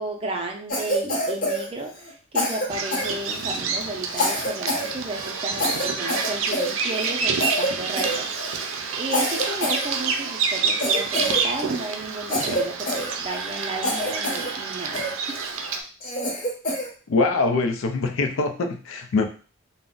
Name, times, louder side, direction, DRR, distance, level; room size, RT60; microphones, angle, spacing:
voice 1, 0.0-15.4, right 2 dB, 30° right, 1 dB, 0.5 m, -33 dB
Cough, 0.7-2.1 2.4-3.6 4.1-4.9 5.2-5.3 5.6-7.1 7.4-7.7 8.0-8.6 9.1-10.3 10.8-11.9 12.3-13.5 13.8-14.5 14.9-15.5 16.0-16.9, left 1 dB, 45° left, 0.8 m, -27 dB
Bird vocalization bird call bird song, 2.7-15.8, right 5 dB, 85° right, 0.4 m, -28 dB
voice 2, 17.1-19.2, left 3 dB, 90° left, 6 dB, 0.4 m, -23 dB
2.5 x 2.1 x 3.7 m, 0.39 s
head